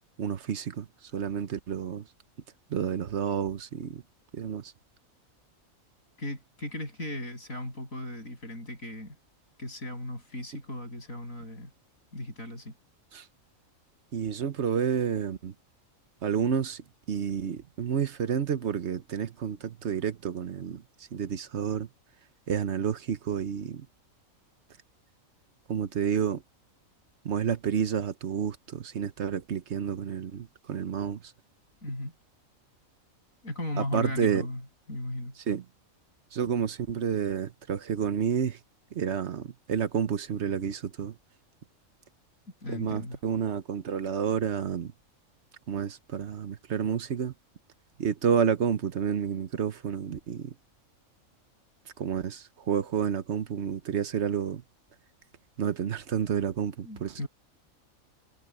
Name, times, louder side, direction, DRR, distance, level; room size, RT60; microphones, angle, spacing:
voice 1, 0.2-2.1 2.7-4.0 4.3-4.7 13.1-13.3 14.1-15.5 16.2-20.8 21.1-21.9 22.5-23.9 25.7-26.4 27.2-31.3 33.8-34.5 35.5-35.6 36.3-38.6 38.9-41.1 42.7-44.9 45.7-47.3 48.0-50.5 52.0-54.6 55.6-57.2, right 7 dB, 55° right, 1.1 m, -30 dB
voice 2, 6.2-9.2 9.6-11.7 12.1-12.7 31.8-32.1 33.4-34.6 34.9-35.4 42.6-43.2 56.8-57.3, left 1 dB, 75° left, 8.2 m, -36 dB
omnidirectional pair, 1.4 m